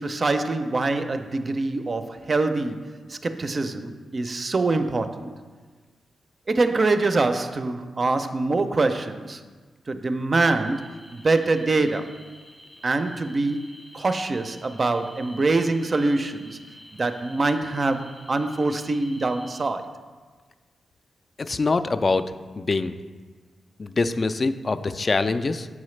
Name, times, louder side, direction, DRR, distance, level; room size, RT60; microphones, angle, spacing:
voice 1, 0.0-5.3 6.5-9.4 9.9-12.2 12.8-13.6 13.9-16.6 16.9-19.9, right 3 dB, 40° right, 9 dB, 0.4 m, -24 dB
sound 1, 10.4-19.7, left 1 dB, 15° left, 0.6 m, -49 dB
voice 2, 21.4-23.0 23.8-25.7, left 3 dB, 40° left, 10 dB, 0.3 m, -24 dB
7.1 x 4.8 x 3.2 m, 1.4 s
cardioid pair, 70°, 0 cm